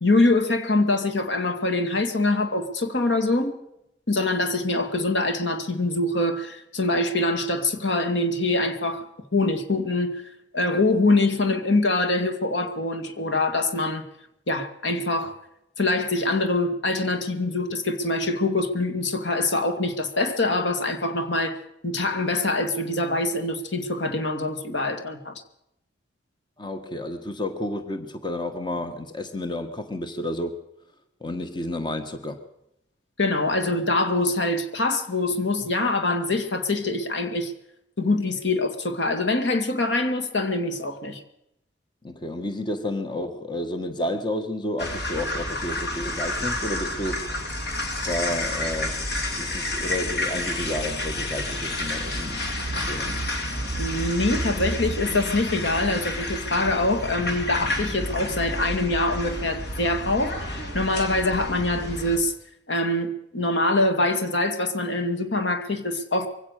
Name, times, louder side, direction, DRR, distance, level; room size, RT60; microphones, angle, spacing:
voice 1, 0.0-3.5 4.1-9.1 9.3-10.2 10.5-14.0 14.5-15.4 15.8-25.4 33.2-37.5 38.0-41.2 53.8-62.3 62.7-66.3, left 2 dB, 80° left, 2.4 m, -24 dB
voice 2, 26.6-30.6 31.2-32.4 42.0-47.2 48.0-49.1 49.4-52.5 52.7-53.2, left 1 dB, 25° left, 1.6 m, -31 dB
sound 1, 44.8-62.2, left 1 dB, 60° left, 3.4 m, -30 dB
23.5 x 17.0 x 6.7 m
head